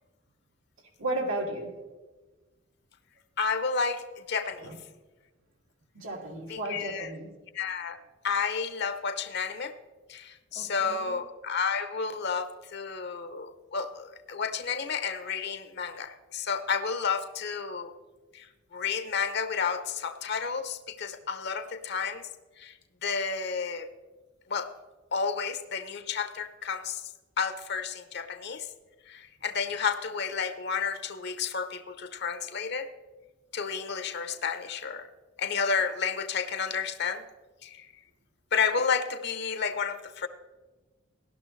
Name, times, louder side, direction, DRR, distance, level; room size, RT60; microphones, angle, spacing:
voice 1, 1.0-1.7 4.6-4.7 5.9-7.3 10.5-11.1, right 1 dB, 90° right, -1 dB, 2.5 m, -34 dB
voice 2, 3.4-4.7 6.5-7.1 7.5-9.7 10.1-17.9 18.3-18.5 18.7-22.3 22.6-22.8 23.0-23.9 24.5-24.7 25.1-27.0 27.4-28.7 29.1-32.9 33.5-35.1 35.4-37.2 37.6-37.9 38.5-40.3, left 5 dB, 55° left, 9 dB, 0.8 m, -31 dB
16.0 x 12.0 x 3.2 m, 1.3 s
head